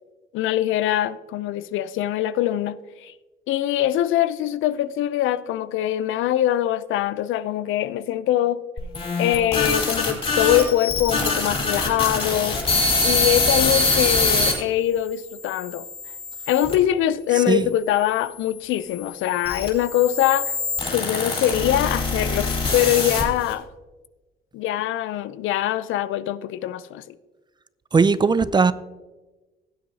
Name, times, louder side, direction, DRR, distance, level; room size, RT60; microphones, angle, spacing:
voice 1, 0.3-3.1 3.5-8.6 9.2-12.6 13.0-15.8 16.5-20.6 20.9-23.7 24.5-27.1, left 12 dB, 85° left, 0.5 m, -23 dB
sound 1, 8.8-14.5 15.2-16.7 17.5-23.5, left 3 dB, 30° left, 3.8 m, -24 dB
voice 2, 27.9-28.7, right 4 dB, 20° right, 0.4 m, -18 dB
17.0 x 7.7 x 2.7 m
cardioid pair, 90°, 20 cm